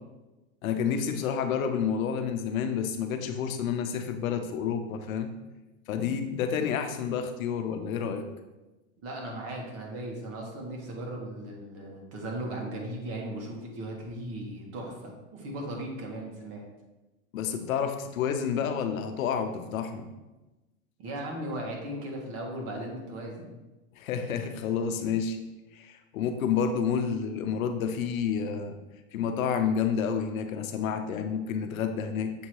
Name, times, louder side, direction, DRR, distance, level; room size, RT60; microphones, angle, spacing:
voice 1, 0.6-5.3 5.9-8.3 17.3-20.1 24.0-25.4 25.7-28.8 29.1-32.3, left 7 dB, 75° left, 7 dB, 0.9 m, -29 dB
voice 2, 9.0-16.7 21.0-23.6, right 1 dB, 35° right, 0 dB, 1.5 m, -37 dB
7.2 x 2.8 x 4.6 m, 1.1 s
supercardioid pair, 140°, 42 cm